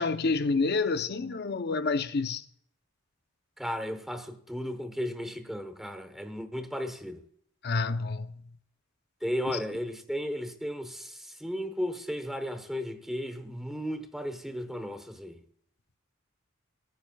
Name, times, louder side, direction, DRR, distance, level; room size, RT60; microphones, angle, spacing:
voice 1, 0.0-2.4 7.6-8.4, left 4 dB, 50° left, 0.6 m, -28 dB
voice 2, 3.6-7.2 9.2-15.4, equal, ahead, 1.0 m, -35 dB
17.5 x 9.3 x 2.3 m
head